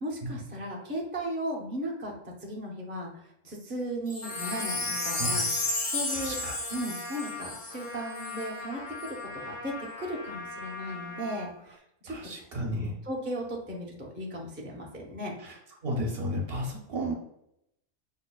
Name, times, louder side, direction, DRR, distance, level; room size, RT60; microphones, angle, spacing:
voice 1, 0.0-5.5 5.9-6.4 6.7-9.2 9.4-12.2 13.0-15.3, equal, 15° right, -2 dB, 0.3 m, -36 dB
Wind chime, 4.1-8.4 9.0-9.1, left 2 dB, 55° left, 0.4 m, -32 dB
Trumpet, 4.2-11.5, left 2 dB, 80° left, 1.1 m, -41 dB
voice 2, 6.1-6.6 12.1-12.9 15.4-15.5 15.8-17.1, equal, 55° right, 0 dB, 0.9 m, -33 dB
5.5 x 2.1 x 2.2 m, 0.77 s
omnidirectional pair, 1.3 m